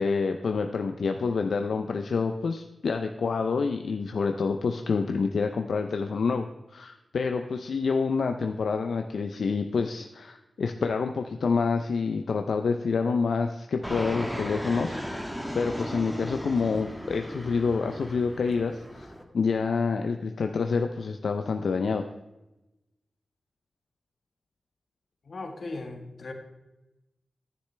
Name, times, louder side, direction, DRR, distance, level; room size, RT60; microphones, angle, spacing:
voice 1, 0.0-6.4 6.7-15.3 15.5-19.1 19.3-22.0, left 5 dB, 85° left, 6 dB, 0.5 m, -27 dB
Fixed-wing aircraft airplane, 13.8-19.2, equal, ahead, 1.3 m, -36 dB
voice 2, 25.2-26.3, left 2 dB, 65° left, 4 dB, 1.5 m, -37 dB
11.5 x 9.9 x 3.3 m, 0.98 s
wide cardioid pair, 80°, 0 cm